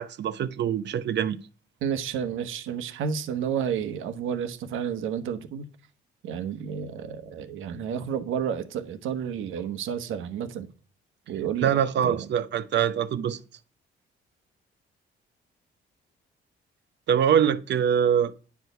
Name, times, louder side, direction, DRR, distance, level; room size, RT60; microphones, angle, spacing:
voice 1, 0.0-1.4 11.6-13.4 17.1-18.3, right 8 dB, 60° right, 0.8 m, -24 dB
voice 2, 1.8-5.7 6.2-10.7 11.3-11.7 12.0-12.3, right 8 dB, 85° right, 1.1 m, -31 dB
9.7 x 4.7 x 6.8 m
cardioid pair, 90°, 20 cm